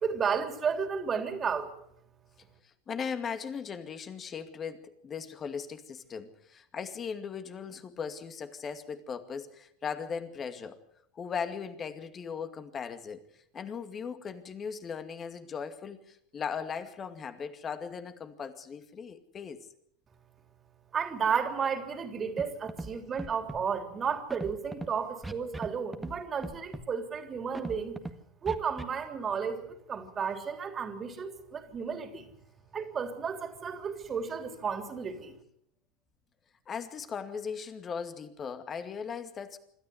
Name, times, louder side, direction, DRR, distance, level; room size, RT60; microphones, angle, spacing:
voice 1, 0.0-1.7 20.9-28.0 28.4-32.3 32.7-35.3, right 6 dB, 30° right, 6 dB, 3.3 m, -33 dB
voice 2, 2.6-10.8 11.1-13.2 13.5-19.7 36.7-39.6, left 6 dB, 30° left, 9 dB, 2.3 m, -38 dB
Scratching (performance technique), 22.4-22.5 22.7-22.9 23.2-23.6 24.3-24.9 25.2-25.7 25.9-26.2 26.4-26.8 27.5-28.1 28.5-28.8, right 2 dB, 10° right, 1.8 m, -38 dB
26.0 x 13.0 x 8.1 m, 0.74 s
hypercardioid pair, 85°, 0 cm